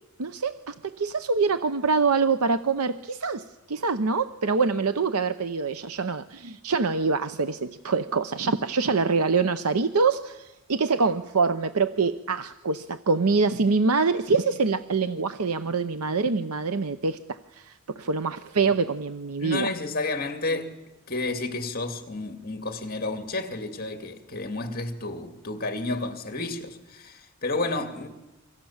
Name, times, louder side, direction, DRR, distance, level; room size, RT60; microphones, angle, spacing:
voice 1, 0.2-19.7, right 4 dB, 85° right, 0.8 m, -25 dB
voice 2, 19.4-20.8 21.1-28.1, left 2 dB, 40° left, 2.3 m, -31 dB
27.5 x 25.0 x 7.3 m
head